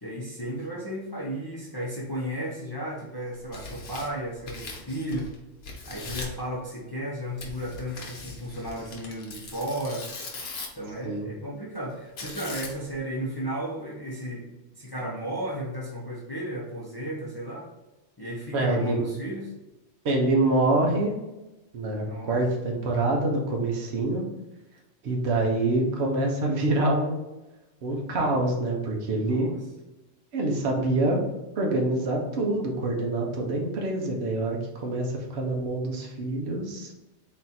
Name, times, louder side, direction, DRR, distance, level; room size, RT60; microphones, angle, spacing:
voice 1, 0.0-5.3 5.9-10.1 10.7-17.7 18.2-19.5 22.0-22.4 29.1-29.5, equal, 25° left, -5 dB, 0.7 m, -34 dB
Tearing, 3.3-5.3 5.6-6.4 7.4-10.9 12.2-13.0, left 3 dB, 60° left, 1.0 m, -40 dB
voice 2, 18.5-19.1 20.0-21.1 21.7-24.2 25.0-27.2 27.8-29.5 30.3-31.2 31.6-36.9, right 2 dB, 60° right, 0 dB, 1.1 m, -26 dB
4.0 x 2.5 x 4.2 m, 1.0 s
omnidirectional pair, 1.3 m